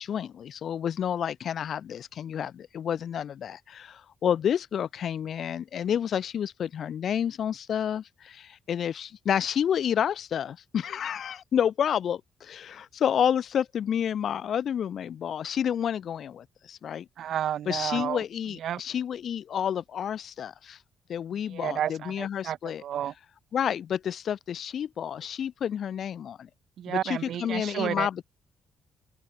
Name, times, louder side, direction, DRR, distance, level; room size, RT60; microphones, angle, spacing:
voice 1, 0.0-17.1 17.7-20.8 21.1-22.8 23.5-26.5 26.9-28.2, left 9 dB, 55° left, 2.5 m, -30 dB
voice 2, 17.2-18.2 18.6-18.8 21.5-23.1 26.8-28.1, right 10 dB, 65° right, 3.7 m, -31 dB
open air
cardioid pair, 145°, 0 cm